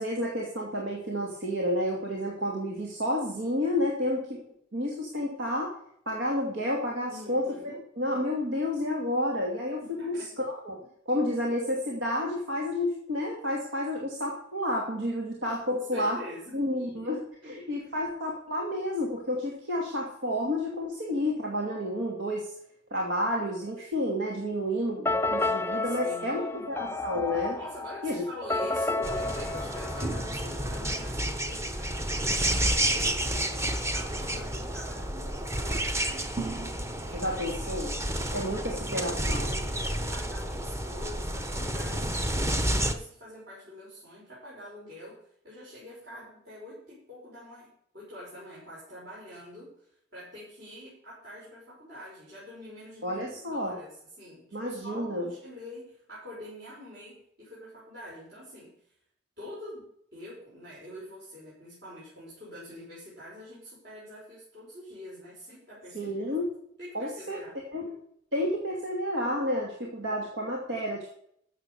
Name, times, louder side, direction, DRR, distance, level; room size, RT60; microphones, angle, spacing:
voice 1, 0.0-4.4 4.7-5.7 6.1-7.4 8.0-10.2 10.7-10.8 11.1-16.2 16.5-22.5 22.9-27.6 28.0-28.2 37.1-37.9 38.3-39.5 53.0-53.8 54.5-55.3 65.9-66.5 66.9-67.4 67.7-67.9 68.3-71.1, left 1 dB, 80° right, -1 dB, 2.5 m, -30 dB
voice 2, 7.1-7.8 9.8-10.3 15.7-16.6 17.4-17.5 25.8-26.7 27.5-36.6 37.1-37.9 38.4-42.1 42.8-47.7 47.9-58.8 59.4-66.3 66.8-67.6, left 1 dB, 55° right, -9 dB, 6.2 m, -45 dB
sound 1, 25.0-30.8, left 2 dB, 10° left, 0.4 m, -31 dB
sound 2, 29.0-42.9, right 1 dB, 15° right, 0.9 m, -30 dB
13.5 x 7.4 x 7.1 m, 0.69 s
head